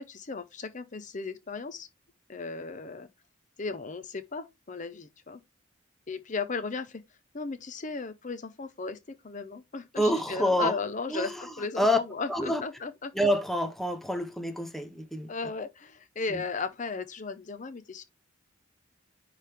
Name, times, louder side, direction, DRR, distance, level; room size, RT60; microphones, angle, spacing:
voice 1, 0.0-1.9 2.3-3.1 3.6-5.4 6.1-7.0 7.3-9.0 9.2-13.1 15.3-18.0, left 4 dB, 40° left, 0.7 m, -36 dB
voice 2, 10.0-10.7 11.1-11.5 11.8-12.0 12.3-12.6 13.1-15.3 16.3-16.4, equal, ahead, 0.7 m, -27 dB
10.0 x 3.4 x 3.4 m
head